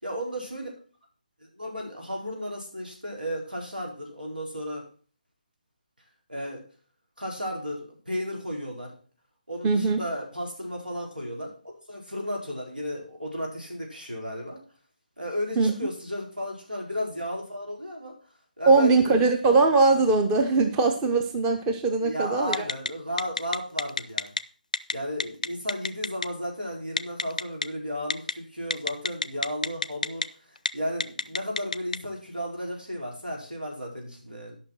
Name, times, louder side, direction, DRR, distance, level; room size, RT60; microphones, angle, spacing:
voice 1, 0.0-0.7 1.4-4.9 6.3-6.7 7.2-8.9 9.5-14.6 15.2-18.2 18.6-19.2 20.4-20.6 22.0-24.3 24.9-34.6, equal, 85° right, -1 dB, 4.8 m, -34 dB
voice 2, 9.6-10.0 15.6-15.7 18.7-22.5, right 3 dB, 10° right, 6 dB, 0.7 m, -21 dB
Telephone, 22.5-22.9 23.2-24.4 24.7-24.9 25.2-26.3 27.0-27.6 28.1-28.3 28.7-30.3 30.6-30.7 31.0-32.0, left 3 dB, 60° left, 0.5 m, -26 dB
11.5 x 5.8 x 6.1 m, 0.40 s
figure-of-eight pair, 150°, 5 cm